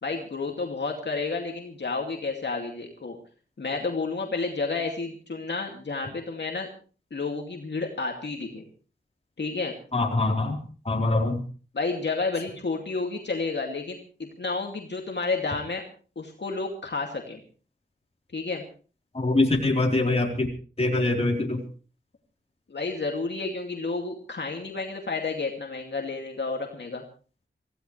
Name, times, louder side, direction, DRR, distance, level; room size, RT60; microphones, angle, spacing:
voice 1, 0.0-3.2 3.6-6.7 7.1-8.7 9.4-9.7 11.7-15.8 16.2-17.4 18.3-18.6 22.7-27.0, left 3 dB, 60° left, 1 dB, 2.5 m, -31 dB
voice 2, 9.9-11.4 19.1-20.5 20.8-21.6, left 2 dB, 30° left, 0 dB, 3.9 m, -24 dB
25.5 x 16.5 x 3.3 m, 0.38 s
wide cardioid pair, 100°, 20 cm